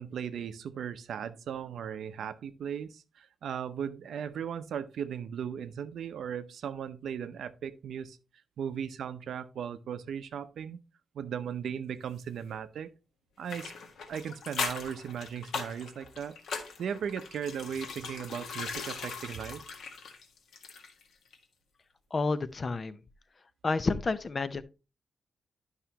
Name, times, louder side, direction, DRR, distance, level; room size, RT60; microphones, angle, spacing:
voice 1, 0.0-8.2 8.6-10.8 11.1-12.9 13.4-13.7 14.1-16.4 16.8-19.6, right 8 dB, 90° right, 0.6 m, -37 dB
sound 1, 13.5-21.1 21.3-21.4, left 5 dB, 85° left, 1.6 m, -39 dB
voice 2, 22.1-23.0 23.6-24.6, left 3 dB, 30° left, 0.5 m, -30 dB
11.0 x 5.7 x 2.9 m
wide cardioid pair, 180°, 0 cm